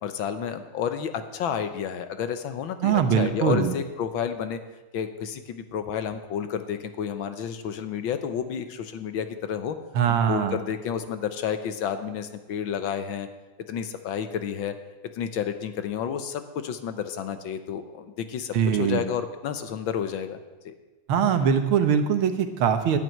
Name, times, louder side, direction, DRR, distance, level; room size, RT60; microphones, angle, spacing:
voice 1, 0.0-4.6 4.9-9.7 10.1-13.3 13.7-14.7 15.1-20.4 20.6-20.7, left 8 dB, 70° left, 9 dB, 1.6 m, -30 dB
voice 2, 2.8-3.7 10.0-10.6 18.5-19.0 21.1-23.0, right 8 dB, 80° right, 8 dB, 1.9 m, -22 dB
10.5 x 9.3 x 9.1 m, 1.2 s
omnidirectional pair, 2.3 m